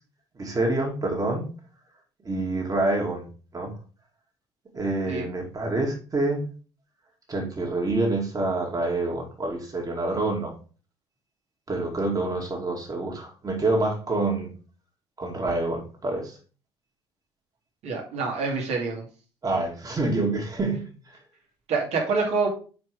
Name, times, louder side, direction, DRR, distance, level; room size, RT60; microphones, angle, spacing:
voice 1, 0.3-1.5 2.2-3.3 3.5-3.8 4.7-6.4 7.3-10.5 11.7-14.5 15.2-16.4 19.4-21.2, right 2 dB, 25° right, 2.1 m, -27 dB
voice 2, 17.8-19.1 21.7-22.5, right 4 dB, 55° right, 1.9 m, -26 dB
5.1 x 4.7 x 4.6 m
figure-of-eight pair, 50°, 13 cm